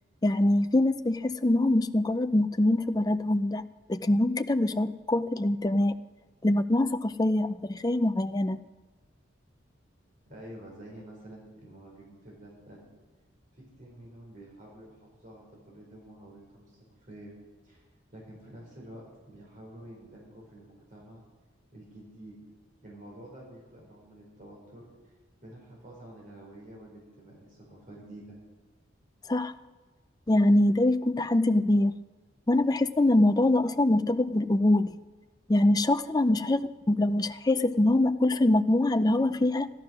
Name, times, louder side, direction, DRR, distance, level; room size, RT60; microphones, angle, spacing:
voice 1, 0.2-5.9 6.4-8.6 29.3-29.5 30.3-31.9 32.5-34.9 35.5-36.6 36.9-39.7, left 1 dB, 20° left, 10 dB, 0.4 m, -24 dB
voice 2, 10.3-12.9 13.5-17.3 17.6-17.9 18.1-21.2 21.7-22.3 22.8-25.1 25.4-28.4 36.4-36.5, right 1 dB, 45° right, -3 dB, 4.4 m, -49 dB
14.5 x 12.0 x 6.1 m, 1.2 s
head